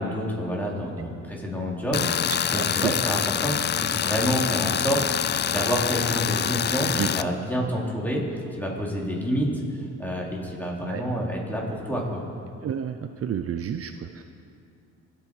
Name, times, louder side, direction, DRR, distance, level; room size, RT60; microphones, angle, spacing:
voice 1, 0.0-8.3 8.6-9.5 10.0-12.2, equal, 5° left, -3 dB, 3.7 m, -28 dB
Tools, 1.9-7.2, left 9 dB, 35° left, 0.4 m, -26 dB
voice 2, 2.3-2.9 7.0-7.1 10.9-11.0 12.6-13.0 13.2-14.2, right 9 dB, 50° right, 8 dB, 0.7 m, -30 dB
25.5 x 8.9 x 4.9 m, 2.5 s
cardioid pair, 90°, 30 cm